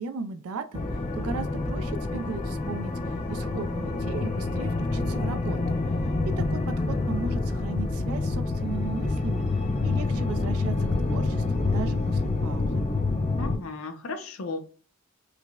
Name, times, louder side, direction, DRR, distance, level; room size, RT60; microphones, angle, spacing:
voice 1, 0.0-6.0 6.4-12.8, right 4 dB, 80° right, 9 dB, 0.4 m, -37 dB
sound 1, 0.7-13.6, left 3 dB, 30° left, 0.4 m, -27 dB
voice 2, 13.4-14.6, left 3 dB, 70° left, 6 dB, 0.6 m, -35 dB
4.9 x 2.0 x 2.3 m, 0.38 s
head